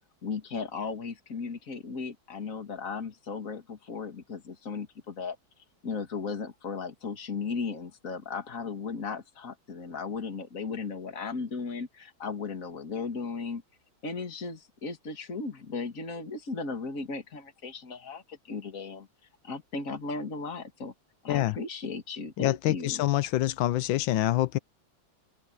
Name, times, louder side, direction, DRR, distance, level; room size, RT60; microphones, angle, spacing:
voice 1, 0.2-5.4 5.8-13.6 14.0-19.1 19.4-20.9 21.2-23.0, left 4 dB, 40° left, 2.7 m, -36 dB
voice 2, 22.4-24.6, left 15 dB, 75° left, 1.4 m, -26 dB
open air
omnidirectional pair, 2.2 m